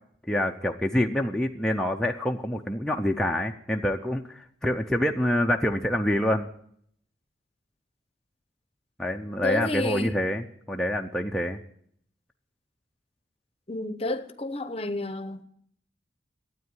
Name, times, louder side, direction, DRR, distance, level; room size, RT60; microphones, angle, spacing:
voice 1, 0.3-6.5 9.0-11.6, left 1 dB, 5° left, 0.6 m, -26 dB
voice 2, 9.4-10.2 13.7-15.4, left 2 dB, 30° left, 0.8 m, -30 dB
12.5 x 9.1 x 9.5 m
head